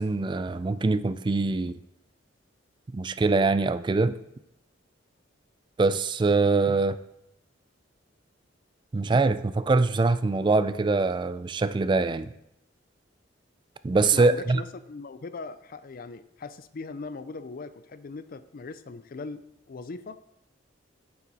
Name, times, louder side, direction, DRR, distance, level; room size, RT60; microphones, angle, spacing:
voice 1, 0.0-1.8 2.9-4.1 5.8-7.0 8.9-12.3 13.8-14.6, right 3 dB, 25° right, 14 dB, 0.3 m, -23 dB
voice 2, 14.1-19.4 19.7-20.2, left 3 dB, 50° left, 13 dB, 0.4 m, -40 dB
8.8 x 7.2 x 4.1 m, 0.81 s
head